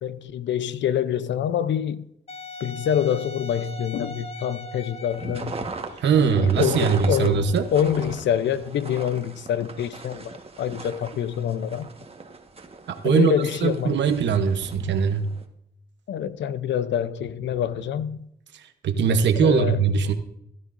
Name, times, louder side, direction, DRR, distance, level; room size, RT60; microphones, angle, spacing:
voice 1, 0.0-2.1 2.6-5.6 6.2-7.4 7.7-11.9 13.0-14.0 16.1-18.3 19.4-19.8, left 9 dB, 85° left, 0.7 m, -26 dB
Wind instrument woodwind instrument, 2.3-7.9, left 1 dB, 35° left, 1.0 m, -41 dB
sound 1, 5.1-15.4, right 3 dB, 35° right, 1.4 m, -39 dB
voice 2, 6.0-7.7 12.9-13.3 13.6-15.3 18.5-20.1, right 6 dB, 80° right, 1.0 m, -21 dB
16.5 x 12.5 x 2.6 m
cardioid pair, 75°, 18 cm